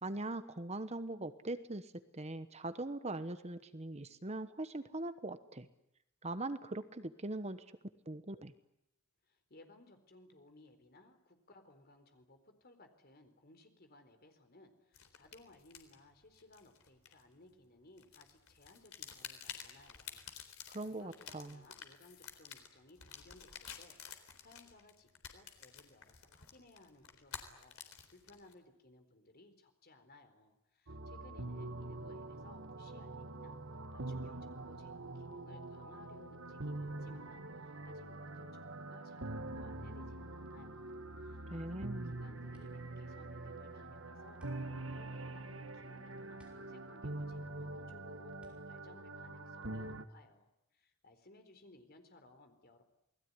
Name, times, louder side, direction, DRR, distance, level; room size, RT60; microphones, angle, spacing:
voice 1, 0.0-5.7 6.2-7.6 8.1-8.5 20.7-21.6 41.5-42.1, right 2 dB, 30° right, 11 dB, 1.1 m, -41 dB
voice 2, 9.2-27.8 28.1-44.4 44.7-52.8, left 2 dB, 45° left, 7 dB, 4.2 m, -61 dB
sound 1, 14.9-17.6 18.0-28.5, left 8 dB, 70° left, 4.0 m, -51 dB
sound 2, 30.9-50.0, right 2 dB, 65° right, 1.7 m, -45 dB
sound 3, 42.5-50.1, equal, 5° right, 5.5 m, -67 dB
28.5 x 20.5 x 9.8 m, 0.80 s
head